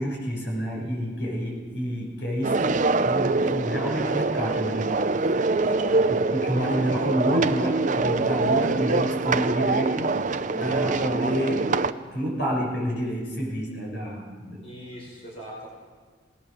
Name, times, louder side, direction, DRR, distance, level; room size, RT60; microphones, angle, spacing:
voice 1, 0.0-4.9 6.1-10.2 10.5-11.8 12.1-14.6, equal, 65° left, -1 dB, 6.6 m, -29 dB
sound 1, 2.4-11.9, right 3 dB, 40° right, 0.6 m, -24 dB
voice 2, 5.6-6.1 14.6-15.7, right 1 dB, 35° left, -3 dB, 5.1 m, -40 dB
21.5 x 19.0 x 6.7 m, 1.5 s
head